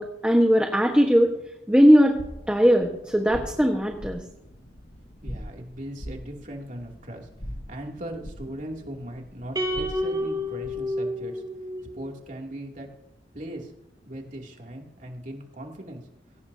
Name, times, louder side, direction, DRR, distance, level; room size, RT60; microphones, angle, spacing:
voice 1, 0.0-1.3 1.7-2.2 2.5-4.2, equal, 5° right, 2 dB, 1.2 m, -19 dB
sound 1, 2.1-11.0, equal, 65° left, 2.2 m, -42 dB
voice 2, 5.2-11.4 11.9-12.9 13.3-13.7 14.1-16.0, right 1 dB, 45° right, 0 dB, 2.7 m, -39 dB
sound 2, 9.5-12.0, left 1 dB, 25° right, 2.9 m, -29 dB
21.5 x 17.5 x 2.8 m, 0.83 s
head